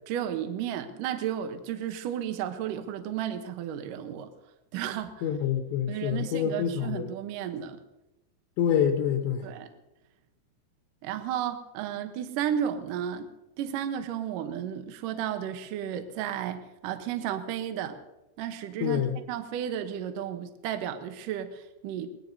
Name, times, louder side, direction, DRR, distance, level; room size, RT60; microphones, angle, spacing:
voice 1, 0.1-4.3 4.7-5.2 5.9-7.8 9.4-9.7 11.0-18.0 18.4-22.1, right 9 dB, 75° right, 7 dB, 2.0 m, -33 dB
voice 2, 5.2-7.1 8.6-9.5 18.8-19.2, left 8 dB, 80° left, 3 dB, 3.4 m, -27 dB
24.0 x 19.0 x 2.7 m, 0.96 s
omnidirectional pair, 5.2 m